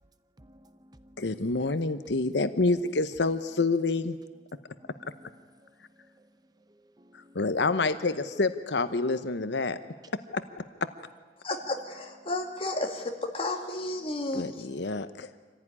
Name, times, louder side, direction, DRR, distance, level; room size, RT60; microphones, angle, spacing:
voice 1, 0.4-1.4 4.8-6.3 6.7-7.4, equal, 25° right, 0.6 m, -58 dB
voice 2, 1.2-4.2 7.1-9.8 10.3-10.6 14.3-15.4, left 3 dB, 80° left, 0.9 m, -28 dB
voice 3, 11.4-14.7, left 2 dB, 30° left, 2.5 m, -32 dB
25.5 x 16.0 x 9.9 m
head